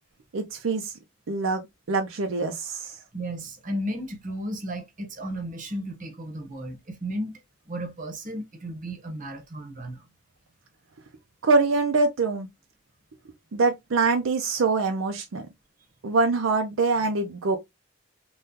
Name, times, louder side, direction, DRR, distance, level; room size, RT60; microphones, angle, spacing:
voice 1, 0.3-0.9 1.3-3.0 11.4-12.5 13.5-15.5 16.0-17.6, right 3 dB, 75° right, 0.5 m, -24 dB
voice 2, 3.1-7.4 7.7-10.0, right 1 dB, 40° right, 0.9 m, -34 dB
3.6 x 2.3 x 2.7 m
head